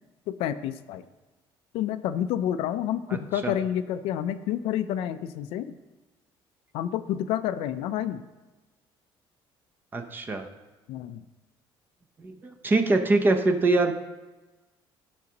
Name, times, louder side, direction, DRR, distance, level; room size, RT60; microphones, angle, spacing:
voice 1, 0.3-1.0 1.7-5.7 6.7-8.2 10.9-11.2, left 10 dB, 80° left, 12 dB, 0.5 m, -29 dB
voice 2, 3.1-3.5 9.9-10.5 12.2-12.3 12.6-13.9, right 2 dB, 20° right, 6 dB, 0.7 m, -23 dB
14.5 x 6.2 x 2.9 m, 1.1 s
cardioid pair, 150°, 10 cm